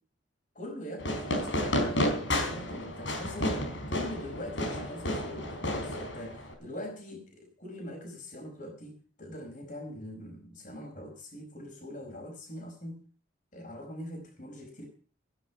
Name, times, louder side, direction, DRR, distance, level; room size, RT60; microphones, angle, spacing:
voice 1, 0.5-3.5 3.9-13.0 13.5-14.9, left 1 dB, 40° left, 3 dB, 4.8 m, -42 dB
Fireworks, 1.0-6.5, equal, 75° left, 4.1 m, -31 dB
15.5 x 10.5 x 5.7 m, 0.42 s
head